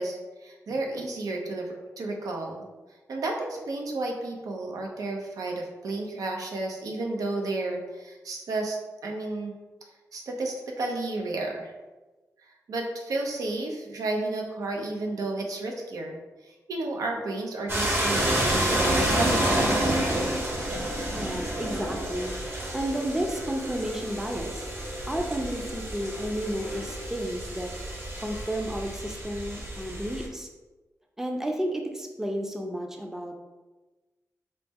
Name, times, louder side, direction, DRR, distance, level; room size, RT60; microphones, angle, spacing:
voice 1, 0.0-2.6 3.1-9.5 10.1-11.7 12.7-19.8, right 2 dB, 85° right, 1 dB, 0.6 m, -32 dB
sound 1, 17.7-30.3, right 1 dB, 40° right, 0.9 m, -29 dB
voice 2, 21.1-24.7 25.1-27.7 28.2-30.5 31.2-33.4, right 1 dB, 5° right, 2 dB, 0.4 m, -32 dB
4.1 x 2.1 x 3.4 m, 1.2 s
wide cardioid pair, 95°, 6 cm